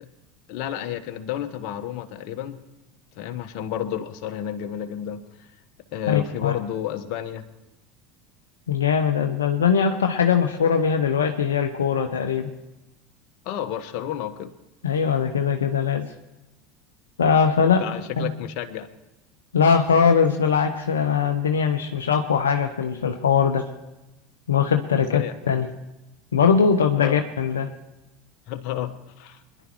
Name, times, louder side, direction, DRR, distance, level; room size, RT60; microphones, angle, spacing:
voice 1, 0.5-2.6 3.2-5.2 5.9-7.4 13.4-14.5 17.8-18.9 25.0-25.6 27.0-27.2 28.5-29.4, left 11 dB, 55° left, 7 dB, 1.2 m, -31 dB
voice 2, 6.1-6.6 8.7-12.5 14.8-16.1 17.2-17.8 18.2-18.3 19.5-23.6 24.5-25.7 26.3-27.7, left 6 dB, 80° left, 4 dB, 0.9 m, -21 dB
25.0 x 11.0 x 3.1 m, 0.97 s
figure-of-eight pair, 75°, 0 cm